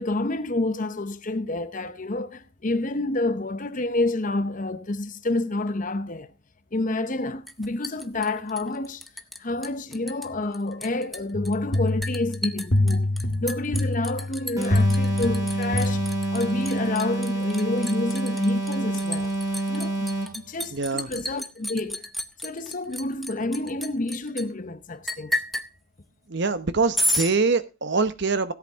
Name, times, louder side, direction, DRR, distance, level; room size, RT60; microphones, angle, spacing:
voice 1, 0.0-6.3 6.7-9.1 9.4-13.1 13.4-16.1 16.3-19.3 19.7-22.0 22.4-25.3, left 2 dB, 40° left, 0.8 m, -29 dB
Liquid, 7.5-9.4 9.6-10.3 10.5-24.4 25.1-25.7 26.9-27.3, left 1 dB, ahead, 0.6 m, -32 dB
sound 1, 11.3-16.6, left 1 dB, 55° left, 1.9 m, -26 dB
sound 2, 14.6-20.5, right 1 dB, 15° right, 3.1 m, -28 dB
voice 2, 20.7-21.2 26.3-28.5, right 4 dB, 55° right, 0.9 m, -24 dB
16.5 x 8.2 x 3.6 m
head